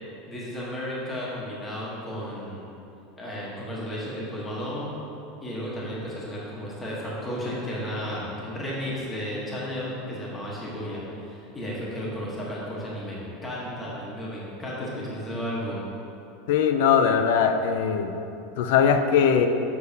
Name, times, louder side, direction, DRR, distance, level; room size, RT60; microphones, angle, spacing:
voice 1, 0.3-2.6 3.2-4.9 5.4-15.9, equal, 15° left, -6 dB, 1.1 m, -33 dB
voice 2, 16.5-18.1 18.6-19.5, left 7 dB, 70° left, 8 dB, 0.4 m, -20 dB
7.0 x 6.4 x 2.7 m, 2.7 s
supercardioid pair, 155°, 0 cm